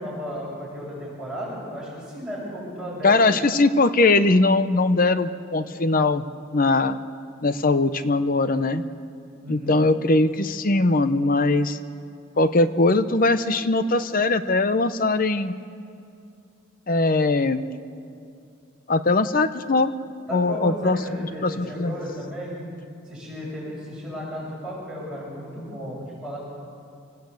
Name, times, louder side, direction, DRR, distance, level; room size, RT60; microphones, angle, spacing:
voice 1, 0.0-3.2 9.4-9.8 20.3-22.6 23.0-26.4, equal, ahead, -10 dB, 7.5 m, -34 dB
voice 2, 3.0-6.2 6.5-7.0 7.4-8.8 9.5-11.8 12.4-15.6 16.9-17.6 18.9-20.0 20.3-21.0 21.4-21.9, left 2 dB, 45° left, 11 dB, 0.7 m, -20 dB
28.5 x 18.0 x 8.4 m, 2.5 s
head